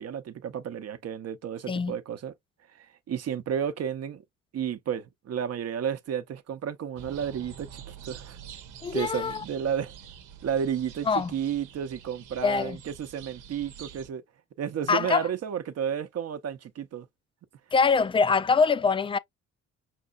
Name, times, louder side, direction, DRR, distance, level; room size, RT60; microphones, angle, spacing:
voice 1, 0.0-2.3 2.7-4.2 4.5-8.4 8.9-9.9 10.4-14.2 14.6-17.1, right 8 dB, 55° right, 0.8 m, -32 dB
sound 1, 6.9-14.1, right 8 dB, 85° right, 1.0 m, -46 dB
voice 2, 8.8-9.4 11.1-11.3 12.4-12.8 14.9-15.3 17.7-19.2, left 5 dB, 20° left, 0.4 m, -24 dB
5.4 x 3.6 x 2.4 m
cardioid pair, 90°, 30 cm